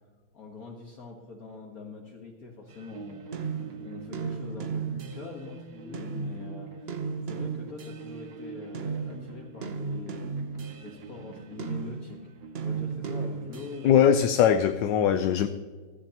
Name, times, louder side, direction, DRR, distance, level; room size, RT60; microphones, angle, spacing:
voice 1, 0.3-3.2 3.8-7.0 7.3-10.3 10.8-12.3 12.6-14.1 15.1-15.3, left 3 dB, 50° left, 1 dB, 1.8 m, -43 dB
sound 1, 2.7-5.5 5.9-8.3 8.7-14.0, right 5 dB, 50° right, 0.7 m, -35 dB
sound 2, 2.9-13.8, right 4 dB, 70° right, 2.4 m, -46 dB
voice 2, 13.8-15.5, left 8 dB, 75° left, 9 dB, 1.2 m, -21 dB
15.5 x 13.5 x 2.9 m, 1.4 s
omnidirectional pair, 2.1 m